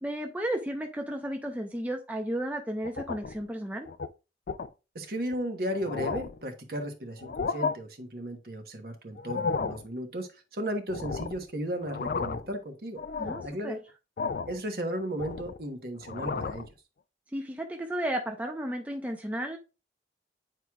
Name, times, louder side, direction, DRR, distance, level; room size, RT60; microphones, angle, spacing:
voice 1, 0.0-3.9 13.2-13.8 17.3-19.6, right 1 dB, 10° right, 3 dB, 0.5 m, -33 dB
sound 1, 2.8-3.4 3.9-4.1 4.5-4.7 5.3-5.4 5.7-6.4 7.2-7.7 9.2-9.8 10.9-11.5 11.8-12.5 13.0-13.5 14.2-14.6 15.0-15.7 16.0-16.7, left 4 dB, 50° left, 0.3 m, -33 dB
voice 2, 4.9-13.0 13.4-13.8 14.5-16.7, equal, 55° right, 5 dB, 1.1 m, -35 dB
8.9 x 4.7 x 2.3 m, 0.30 s
head